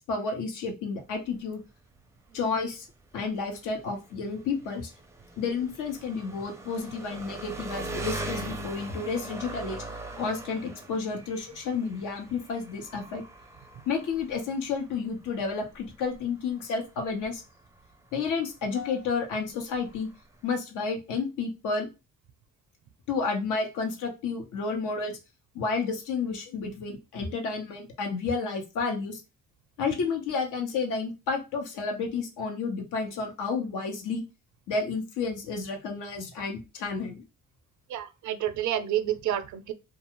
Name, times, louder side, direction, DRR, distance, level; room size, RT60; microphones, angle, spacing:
voice 1, 0.0-1.6 2.3-2.9 3.1-4.9 5.4-9.8 10.2-13.2 13.9-17.4 18.1-20.1 20.4-21.9 23.1-25.2 25.5-29.2 29.8-34.2 34.7-37.2, left 4 dB, 85° left, 0.9 m, -31 dB
Engine, 1.0-20.6, right 2 dB, 10° right, 0.4 m, -42 dB
voice 2, 37.9-39.7, right 11 dB, 70° right, 0.5 m, -29 dB
2.4 x 2.3 x 2.9 m
cardioid pair, 90°, 30 cm